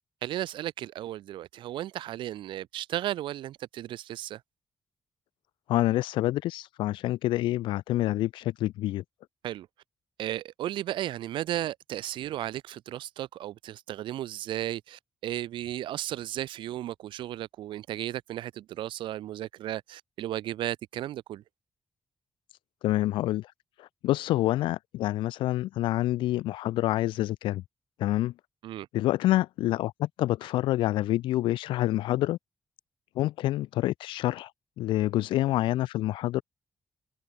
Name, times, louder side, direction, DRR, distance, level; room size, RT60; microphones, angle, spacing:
voice 1, 0.2-4.4 9.4-9.7 10.2-21.4 28.6-28.9, right 13 dB, 85° right, 5.7 m, -34 dB
voice 2, 5.7-9.0 22.8-23.5 23.8-27.6 28.0-28.3 28.9-32.4 33.1-34.5 34.8-36.4, left 15 dB, 90° left, 1.4 m, -27 dB
supercardioid pair, 50°, 8 cm